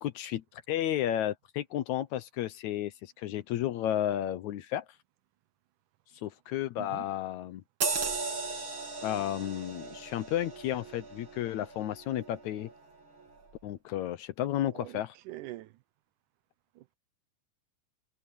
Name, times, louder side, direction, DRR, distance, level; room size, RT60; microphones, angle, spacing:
voice 1, 0.0-4.8 6.2-7.6 9.0-12.7 13.6-15.2, left 12 dB, 75° left, 1.9 m, -32 dB
sound 1, 7.8-12.8 13.2-13.4, right 4 dB, 40° right, 3.0 m, -37 dB
voice 2, 15.3-15.7 16.8-17.0, right 16 dB, 80° right, 2.1 m, -43 dB
omnidirectional pair, 3.8 m